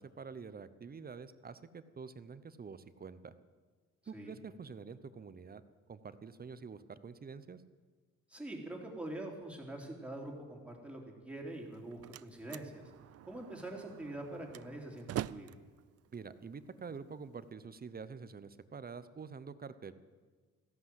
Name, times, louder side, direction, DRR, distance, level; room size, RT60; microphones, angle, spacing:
voice 1, 0.0-3.3 4.1-5.6 5.9-7.6 16.1-19.9, right 5 dB, 30° right, 14 dB, 0.8 m, -47 dB
voice 2, 8.3-12.9 13.2-15.6, right 1 dB, 5° right, 0 dB, 3.4 m, -44 dB
Slam, 11.6-17.5, right 13 dB, 55° right, 0.4 m, -46 dB
14.5 x 11.5 x 7.9 m, 1.5 s
cardioid pair, 90°, 30 cm